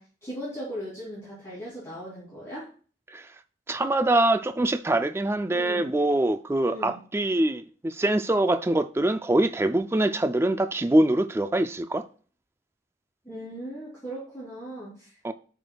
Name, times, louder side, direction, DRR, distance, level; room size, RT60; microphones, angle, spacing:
voice 1, 0.0-2.7 5.5-5.8 6.7-7.0 13.2-15.1, equal, 15° left, 2.7 m, -38 dB
voice 2, 3.7-12.0 15.2-15.3, right 1 dB, 15° right, 0.3 m, -24 dB
14.0 x 5.1 x 2.3 m
head